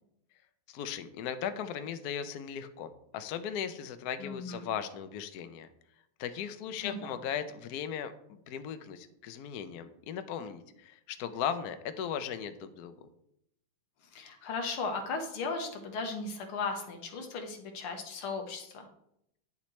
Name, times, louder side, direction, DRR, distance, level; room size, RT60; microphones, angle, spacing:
voice 1, 0.7-5.7 6.2-12.9, left 8 dB, 70° left, 10 dB, 0.9 m, -37 dB
voice 2, 4.2-4.7 6.8-7.2 14.1-18.9, left 4 dB, 90° left, 4 dB, 2.0 m, -36 dB
9.6 x 7.3 x 3.1 m, 0.77 s
omnidirectional pair, 2.3 m